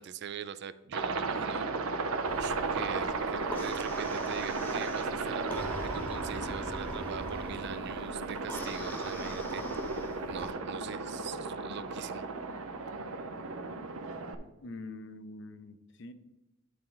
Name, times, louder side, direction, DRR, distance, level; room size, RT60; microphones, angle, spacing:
voice 1, 0.0-1.9 2.3-9.8 10.2-12.3, right 7 dB, 50° right, 15 dB, 0.3 m, -43 dB
Aircraft, 0.9-14.4, right 4 dB, 80° right, 0.7 m, -35 dB
sound 1, 1.7-11.0, right 2 dB, 15° right, 0.6 m, -55 dB
sound 2, 2.2-10.5, equal, 10° left, 0.9 m, -42 dB
voice 2, 14.6-16.1, left 2 dB, 55° left, 11 dB, 0.5 m, -44 dB
11.0 x 4.3 x 3.8 m, 1.0 s
head